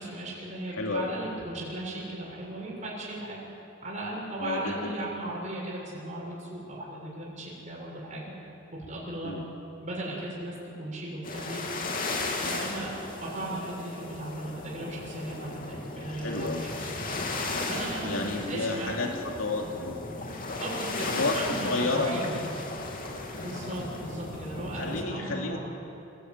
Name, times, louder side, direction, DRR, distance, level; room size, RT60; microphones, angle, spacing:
voice 1, 0.0-3.4 3.8-8.3 8.9-9.4 9.8-11.6 12.1-16.5 16.8-16.9 17.6-19.2 20.6-22.4 23.4-25.6, right 1 dB, 35° right, -5 dB, 6.7 m, -37 dB
voice 2, 0.7-1.1 4.4-4.9 9.2-9.4 16.0-16.6 18.0-20.0 21.1-22.4 23.3-23.4 24.7-25.6, left 3 dB, 70° left, 1 dB, 2.7 m, -31 dB
sound 1, 11.2-25.0, left 2 dB, 45° left, 3.0 m, -36 dB
28.0 x 16.0 x 9.5 m, 2.9 s
head